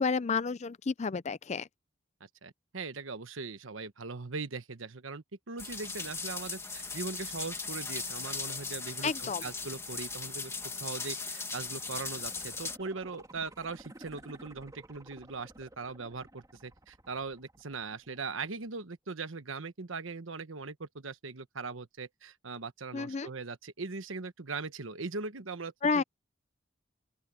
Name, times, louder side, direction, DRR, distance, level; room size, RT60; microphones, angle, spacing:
voice 1, 0.0-1.7 9.0-9.4 22.9-23.3 25.8-26.0, left 5 dB, 35° left, 0.4 m, -30 dB
voice 2, 2.2-26.0, right 4 dB, 85° right, 1.2 m, -40 dB
sound 1, 5.6-12.8, left 4 dB, 15° left, 1.8 m, -38 dB
sound 2, 11.5-18.5 18.9-19.0, right 1 dB, 20° right, 2.4 m, -54 dB
open air
head